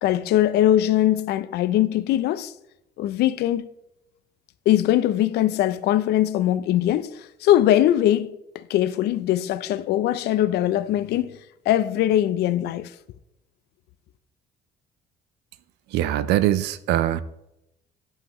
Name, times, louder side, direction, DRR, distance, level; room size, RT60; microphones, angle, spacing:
voice 1, 0.0-2.5 3.0-3.7 4.7-11.3 11.7-12.9, left 12 dB, 75° left, 0.5 m, -21 dB
voice 2, 15.9-17.2, right 13 dB, 85° right, 0.5 m, -22 dB
11.0 x 5.6 x 3.1 m
cardioid pair, 110°, 17 cm